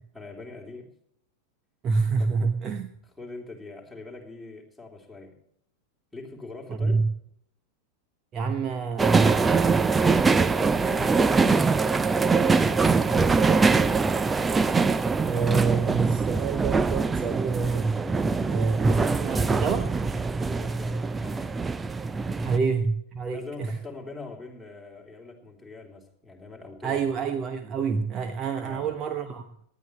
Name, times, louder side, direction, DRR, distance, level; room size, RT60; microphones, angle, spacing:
voice 1, 0.1-0.9 2.2-2.4 3.2-5.4 6.1-7.0 10.1-11.7 12.1-13.5 20.5-21.5 22.1-22.4 23.3-27.0 28.6-28.9, left 3 dB, 5° left, -1 dB, 3.4 m, -43 dB
voice 2, 1.8-2.9 6.7-7.1 8.3-9.9 15.2-17.9 18.5-19.9 22.4-23.8 26.8-29.4, right 5 dB, 30° right, 8 dB, 1.1 m, -27 dB
sound 1, 9.0-22.6, right 4 dB, 15° right, 0.6 m, -23 dB
18.5 x 12.5 x 3.1 m, 0.70 s
figure-of-eight pair, 90°, 0 cm